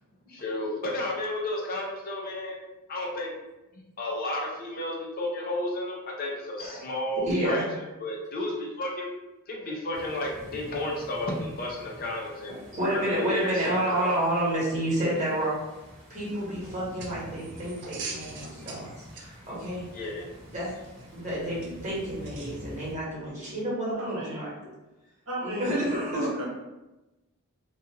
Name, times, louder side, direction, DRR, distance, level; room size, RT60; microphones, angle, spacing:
voice 1, 0.3-2.6 2.9-3.3 4.0-9.1 9.5-12.6 13.1-14.1 19.9-20.3, left 1 dB, 40° left, -2 dB, 0.5 m, -32 dB
voice 2, 6.6-6.9 7.2-7.6 12.5-15.6 16.1-19.9 20.5-20.8 21.1-24.7 25.4-26.3, right 1 dB, 35° right, -7 dB, 1.1 m, -30 dB
sound 1, 9.9-22.9, equal, 5° left, 0.9 m, -48 dB
sound 2, 16.2-23.6, right 4 dB, 50° right, 0.4 m, -46 dB
voice 3, 23.9-24.5 25.3-26.4, right 1 dB, 75° right, -4 dB, 0.9 m, -34 dB
2.4 x 2.3 x 2.8 m, 1.0 s
head